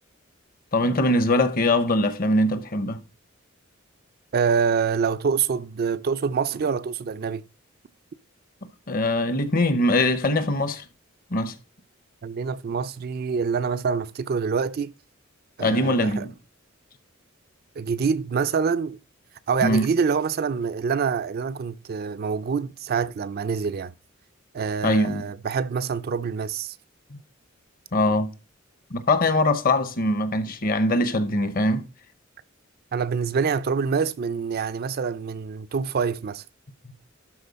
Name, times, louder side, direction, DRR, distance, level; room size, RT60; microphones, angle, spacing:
voice 1, 0.7-3.0 8.9-10.8 11.3-11.5 15.6-16.3 19.6-19.9 24.8-25.2 27.9-28.3 28.9-31.8, left 1 dB, 45° left, 0.9 m, -22 dB
voice 2, 4.3-7.4 12.2-14.9 15.6-16.3 17.8-19.0 19.5-23.9 24.5-26.8 32.9-36.4, right 6 dB, 50° right, 0.4 m, -26 dB
12.0 x 4.2 x 4.1 m
head